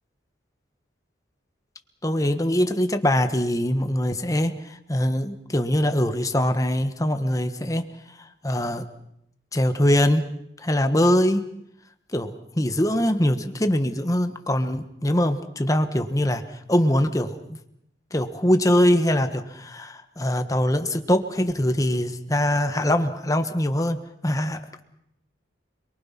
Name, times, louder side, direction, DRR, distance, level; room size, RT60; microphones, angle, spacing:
voice 1, 2.0-7.9 8.2-8.8 9.5-10.3 10.6-11.5 12.1-17.6 18.1-24.8, left 1 dB, 15° left, 8 dB, 1.4 m, -23 dB
27.5 x 23.0 x 5.9 m, 0.77 s
head